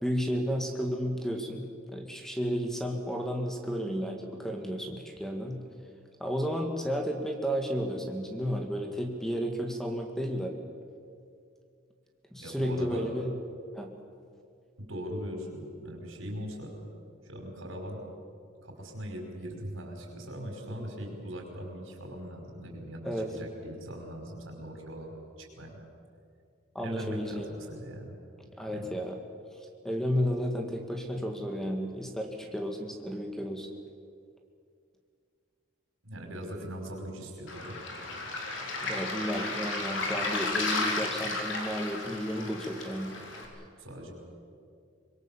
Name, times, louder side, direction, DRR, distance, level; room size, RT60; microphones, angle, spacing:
voice 1, 0.0-5.6 6.2-10.5 12.3-13.3 13.7-13.9 23.0-23.3 26.8-27.5 28.6-29.2 29.8-33.7 38.8-43.2, equal, ahead, 3 dB, 1.8 m, -32 dB
voice 2, 12.4-13.1 14.9-16.8 17.2-18.0 18.6-25.8 26.8-28.2 28.7-28.9 36.0-37.8 43.8-44.1, equal, 85° right, 2 dB, 5.3 m, -40 dB
Waves surf, 37.5-43.5, left 3 dB, 70° left, 3.9 m, -33 dB
25.0 x 21.5 x 7.4 m, 2.3 s
head